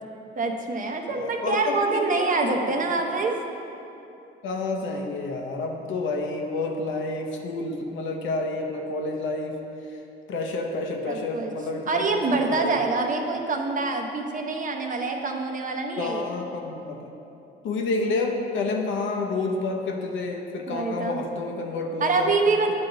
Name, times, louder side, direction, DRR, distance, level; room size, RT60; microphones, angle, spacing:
voice 1, 0.4-3.3 11.1-11.5 11.9-16.3 20.7-21.2 22.0-22.7, right 3 dB, 40° right, 3 dB, 0.7 m, -25 dB
voice 2, 1.1-2.7 4.4-9.6 10.3-12.8 16.0-17.1 17.6-22.3 22.7-22.8, left 3 dB, 80° left, 2 dB, 0.8 m, -29 dB
9.0 x 3.9 x 3.9 m, 2.8 s
cardioid pair, 90°, 20 cm